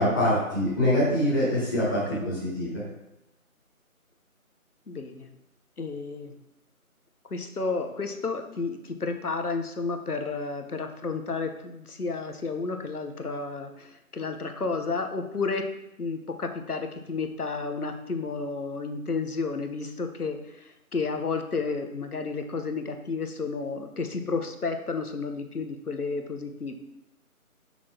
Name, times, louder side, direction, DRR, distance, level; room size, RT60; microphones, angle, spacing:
voice 1, 0.0-2.8, equal, 15° left, -9 dB, 1.4 m, -24 dB
voice 2, 4.9-5.3 5.8-6.3 7.3-15.6 16.0-20.4 20.9-26.7, left 4 dB, 90° left, 6 dB, 1.0 m, -31 dB
6.2 x 5.9 x 2.8 m, 0.88 s
figure-of-eight pair, 165°, 44 cm